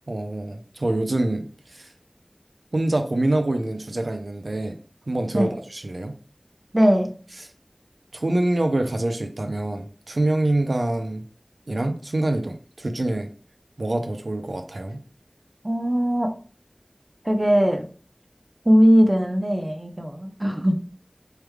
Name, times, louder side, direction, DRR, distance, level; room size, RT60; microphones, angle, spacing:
voice 1, 0.1-1.9 2.7-4.8 5.1-6.1 7.4-7.5 8.1-11.2 11.7-13.3 13.8-15.0, right 1 dB, 90° right, 6 dB, 0.5 m, -25 dB
voice 2, 6.7-7.1 15.6-16.3 17.3-17.9 18.7-20.8, equal, 35° right, 4 dB, 0.7 m, -19 dB
4.8 x 3.2 x 2.3 m, 0.41 s
wide cardioid pair, 40°, 0 cm